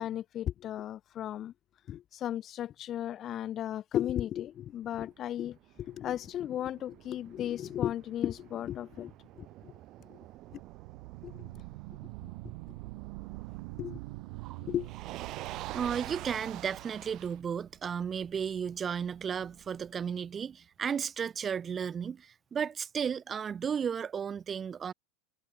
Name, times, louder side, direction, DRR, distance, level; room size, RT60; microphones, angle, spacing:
voice 1, 0.0-1.5 1.9-9.7 10.1-10.2 10.5-10.6 11.2-11.5 13.8-14.0 14.6-14.9, left 11 dB, 25° left, 2.0 m, -35 dB
Motor vehicle (road), 4.8-19.9, right 16 dB, 35° right, 7.6 m, -48 dB
sound 1, 10.3-17.3, right 27 dB, 55° right, 4.1 m, -44 dB
voice 2, 15.7-24.9, right 7 dB, 20° right, 3.9 m, -34 dB
supercardioid pair, 160°, 0 cm